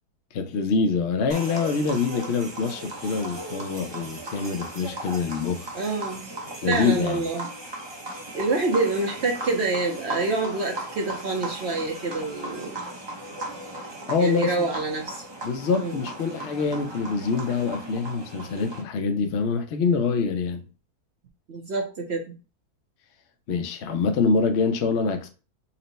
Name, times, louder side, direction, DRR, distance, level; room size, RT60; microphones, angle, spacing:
voice 1, 0.3-5.7 6.6-7.2 14.1-14.5 15.4-20.6 23.5-25.3, left 5 dB, 60° left, 0.7 m, -25 dB
sound 1, 1.3-18.8, right 2 dB, 35° right, 0.4 m, -37 dB
voice 2, 5.7-6.3 6.7-7.5 8.3-12.7 14.2-15.2 15.8-16.0 21.5-22.3, right 3 dB, 55° right, 0.8 m, -27 dB
4.3 x 2.1 x 3.9 m
omnidirectional pair, 1.7 m